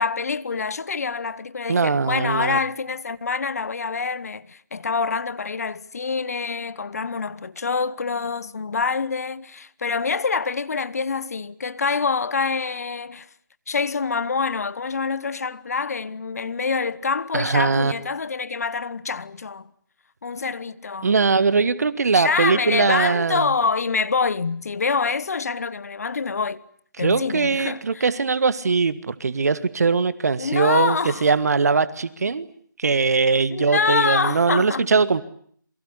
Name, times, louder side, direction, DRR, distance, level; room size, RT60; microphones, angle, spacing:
voice 1, 0.0-13.3 13.7-19.7 20.2-21.1 22.1-26.6 27.0-28.1 30.4-31.3 33.5-34.9, left 5 dB, 50° left, 1.2 m, -26 dB
voice 2, 1.7-2.6 17.3-17.9 21.0-23.5 27.0-32.4 32.8-35.2, right 4 dB, 50° right, 1.7 m, -21 dB
28.0 x 23.5 x 8.2 m
figure-of-eight pair, 150°, 11 cm